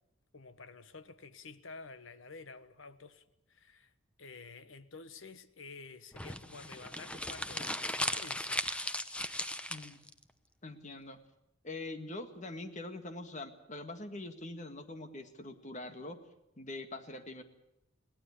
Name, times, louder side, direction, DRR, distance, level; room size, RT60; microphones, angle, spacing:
voice 1, 0.3-3.9 4.2-8.7, left 4 dB, 70° left, 1.3 m, -50 dB
sound 1, 6.1-10.1, left 1 dB, 5° left, 0.9 m, -37 dB
voice 2, 9.7-10.0 10.6-11.2 11.6-16.2 16.6-17.4, left 2 dB, 35° left, 1.9 m, -43 dB
22.0 x 17.5 x 8.5 m
head